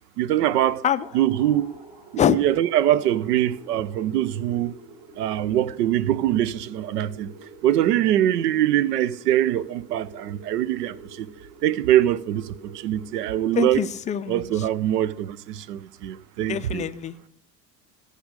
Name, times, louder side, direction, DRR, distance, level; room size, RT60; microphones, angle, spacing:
voice 1, 0.2-0.8 1.1-1.7 2.1-4.7 5.2-7.3 7.6-11.3 11.6-13.8 14.3-16.8, right 12 dB, 75° right, 0.6 m, -23 dB
sound 1, 1.0-14.3, right 2 dB, 15° right, 2.2 m, -46 dB
voice 2, 13.5-14.7 16.5-17.1, left 9 dB, 15° left, 0.3 m, -24 dB
14.5 x 5.1 x 6.5 m
hypercardioid pair, 70°, 48 cm